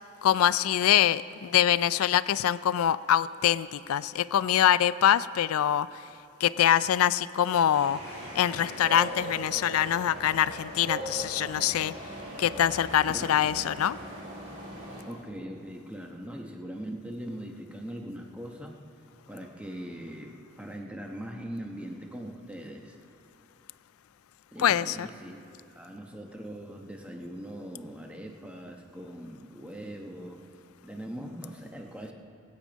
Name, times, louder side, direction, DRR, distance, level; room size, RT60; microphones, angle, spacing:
voice 1, 0.2-5.9 6.4-8.0 8.3-11.9 12.4-14.0 24.6-25.1, left 10 dB, 85° left, 17 dB, 0.4 m, -24 dB
sound 1, 7.7-15.0, right 1 dB, 30° right, 3.0 m, -40 dB
voice 2, 15.1-18.8 19.3-23.0 24.5-25.4 25.7-30.4 30.8-32.1, equal, 5° right, 1 dB, 1.0 m, -41 dB
20.0 x 8.8 x 5.2 m, 2.9 s
head